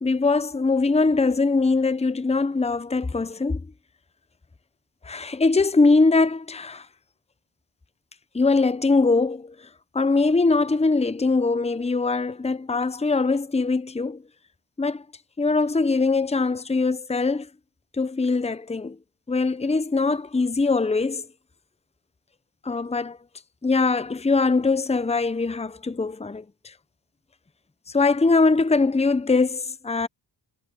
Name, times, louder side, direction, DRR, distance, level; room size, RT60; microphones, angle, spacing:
voice 1, 0.0-3.6 5.0-6.9 8.3-9.7 9.9-14.2 14.8-15.0 15.4-17.5 18.0-19.0 19.3-21.2 22.6-23.2 23.6-26.7 27.9-30.1, left 3 dB, 15° left, 0.7 m, -22 dB
cardioid pair, 55°, 47 cm